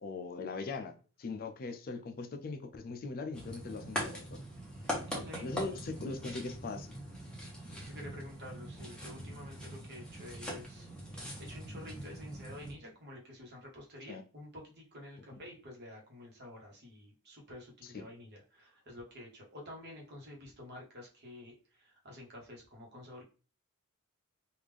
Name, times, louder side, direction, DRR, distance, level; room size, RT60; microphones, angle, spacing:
voice 1, 0.0-0.9 1.2-4.4 5.4-6.9 14.1-14.2 17.8-18.1, left 3 dB, 40° left, 7 dB, 0.4 m, -40 dB
sound 1, 3.3-12.7, equal, 5° left, 0.9 m, -42 dB
voice 2, 4.8-5.6 7.8-10.9 11.1-23.2, left 1 dB, 50° right, -1 dB, 1.1 m, -50 dB
3.3 x 2.4 x 3.4 m, 0.36 s
head